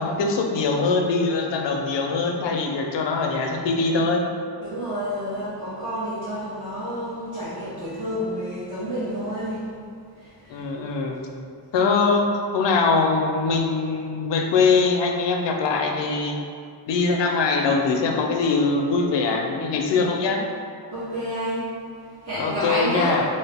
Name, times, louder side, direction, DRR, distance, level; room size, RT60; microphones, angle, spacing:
voice 1, 0.0-4.3 10.5-11.2 11.7-16.4 16.9-20.5 22.4-23.3, left 4 dB, 80° left, 2 dB, 0.5 m, -22 dB
voice 2, 4.6-9.7 10.2-10.7 20.9-21.7 22.0-23.2, equal, 80° right, -13 dB, 1.1 m, -29 dB
2.8 x 2.7 x 3.3 m, 2.3 s
wide cardioid pair, 90°, 42 cm